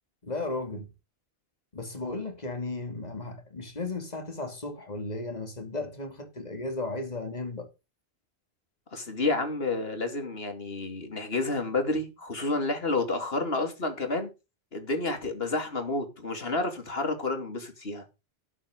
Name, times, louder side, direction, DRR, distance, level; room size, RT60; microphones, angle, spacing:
voice 1, 0.2-0.9 1.7-7.7, left 2 dB, 40° left, 2.9 m, -35 dB
voice 2, 8.9-14.3 14.7-18.0, left 3 dB, 65° left, 2.9 m, -30 dB
13.0 x 9.9 x 3.8 m
omnidirectional pair, 1.1 m